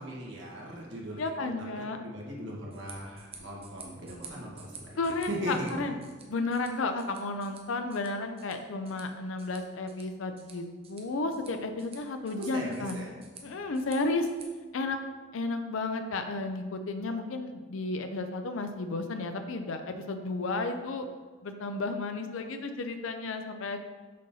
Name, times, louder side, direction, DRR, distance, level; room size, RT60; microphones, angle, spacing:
voice 1, 0.0-1.3 1.7-5.7 12.4-13.1, equal, 65° right, -3 dB, 1.8 m, -39 dB
voice 2, 1.2-2.0 5.0-6.0 6.3-13.0 13.4-14.3 14.7-15.0 15.3-21.1 21.4-23.8, left 3 dB, 85° left, 7 dB, 0.5 m, -33 dB
sound 1, 2.6-14.5, right 4 dB, 30° right, 0.9 m, -52 dB
6.4 x 4.1 x 5.5 m, 1.4 s
head